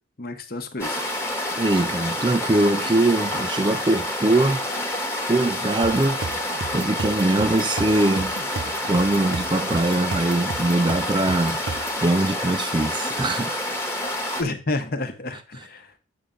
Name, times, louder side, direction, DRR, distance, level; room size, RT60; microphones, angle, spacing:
voice 1, 0.2-1.0 14.4-16.0, left 2 dB, 45° left, 0.9 m, -30 dB
sound 1, 0.8-14.4, left 1 dB, 10° left, 1.1 m, -28 dB
voice 2, 1.6-4.6 5.3-6.3 6.7-8.3 8.9-13.6 15.5-15.7, right 2 dB, 25° right, 0.4 m, -22 dB
sound 2, 5.8-12.0, right 3 dB, 70° right, 0.9 m, -34 dB
8.4 x 5.6 x 3.8 m
head